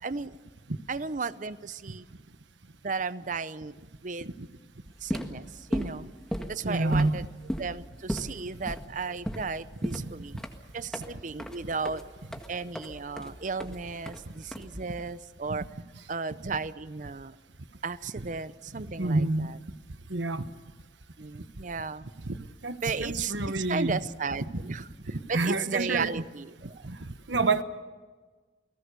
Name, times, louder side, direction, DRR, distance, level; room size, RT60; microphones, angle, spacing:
voice 1, 0.0-0.3 0.9-2.1 2.8-3.8 4.0-4.4 5.0-6.1 6.5-7.2 7.6-10.3 10.7-12.0 12.5-15.7 16.1-17.3 17.8-19.6 21.2-22.1 22.8-26.9, right 4 dB, 45° right, 15 dB, 0.7 m, -35 dB
sound 1, 4.9-15.1, equal, 5° left, 1.7 m, -36 dB
voice 2, 6.6-7.2 15.5-15.6 18.2-18.3 19.0-19.5 20.1-20.4 22.2-22.3 22.6-24.0 24.5-24.6 25.3-26.1 26.8-27.0 27.3-27.6, right 2 dB, 85° right, 11 dB, 1.3 m, -27 dB
30.0 x 18.5 x 6.9 m, 1.4 s
head